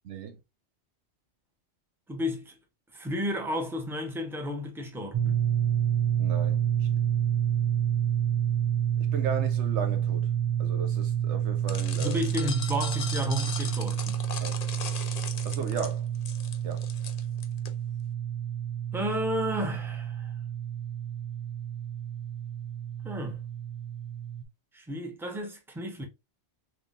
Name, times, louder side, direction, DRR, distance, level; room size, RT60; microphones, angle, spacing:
voice 1, 0.0-0.4 6.2-6.7 9.0-10.3 10.6-12.2 14.4-14.6 15.4-16.1 16.6-16.9, right 6 dB, 75° right, 1.0 m, -36 dB
voice 2, 2.1-2.6 2.9-5.4 12.0-14.2 18.9-20.3 23.0-23.4 24.7-26.0, equal, ahead, 0.8 m, -32 dB
sound 1, 5.1-24.4, right 9 dB, 35° right, 0.4 m, -29 dB
sound 2, 11.7-17.7, left 5 dB, 45° left, 0.5 m, -38 dB
3.6 x 3.2 x 2.4 m
omnidirectional pair, 1.2 m